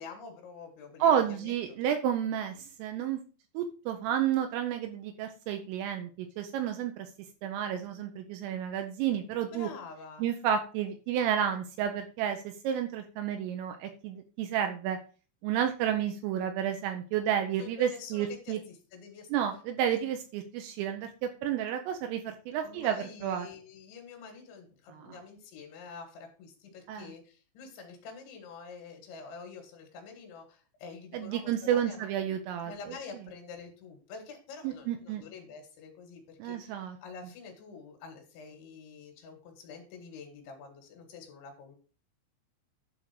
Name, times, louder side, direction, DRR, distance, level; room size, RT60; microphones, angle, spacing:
voice 1, 0.0-1.6 9.5-10.2 17.6-19.3 22.6-32.1 32.7-41.8, left 5 dB, 70° left, 2 dB, 4.1 m, -47 dB
voice 2, 1.0-3.2 3.5-7.1 7.4-9.7 10.2-15.0 15.4-18.6 19.3-23.5 24.9-25.2 26.9-27.1 31.1-33.0 34.6-35.2 36.4-37.0, right 9 dB, 85° right, 5 dB, 3.5 m, -31 dB
11.5 x 4.1 x 6.0 m, 0.36 s
omnidirectional pair, 5.8 m